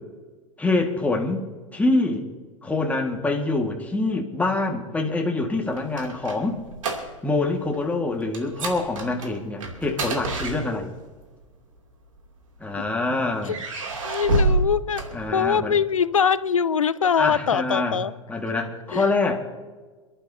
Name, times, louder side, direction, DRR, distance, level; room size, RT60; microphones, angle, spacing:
voice 1, 0.6-2.3 2.6-6.6 7.2-10.9 12.6-13.6 15.1-15.7 17.2-18.0 18.3-19.4, left 2 dB, 10° left, 1.8 m, -25 dB
sound 1, 5.5-7.4 7.7-7.9 8.3-11.1 12.0-12.9 13.4-15.7, right 2 dB, 80° right, 2.8 m, -28 dB
voice 2, 14.0-15.0 15.3-18.1 18.9-19.1, left 7 dB, 90° left, 0.5 m, -22 dB
28.0 x 11.5 x 2.8 m
hypercardioid pair, 90°, 17 cm